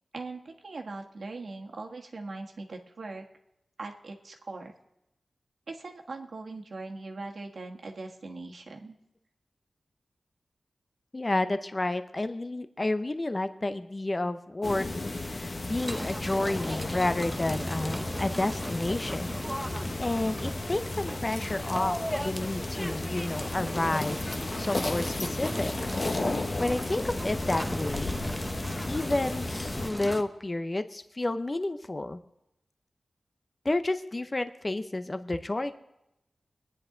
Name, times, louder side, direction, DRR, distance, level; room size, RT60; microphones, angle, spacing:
voice 1, 0.1-3.2 3.8-4.7 5.7-9.0, right 3 dB, 70° right, 2 dB, 1.4 m, -40 dB
voice 2, 11.1-14.9 15.2-19.4 20.0-25.7 26.6-28.2 28.9-32.2 33.6-35.7, left 2 dB, 30° left, 10 dB, 0.6 m, -30 dB
sound 1, 14.6-29.9, left 2 dB, 50° left, 1.2 m, -34 dB
sound 2, 15.8-30.2, equal, 5° left, 0.8 m, -36 dB
22.0 x 10.0 x 3.8 m, 0.87 s
wide cardioid pair, 85°, 0 cm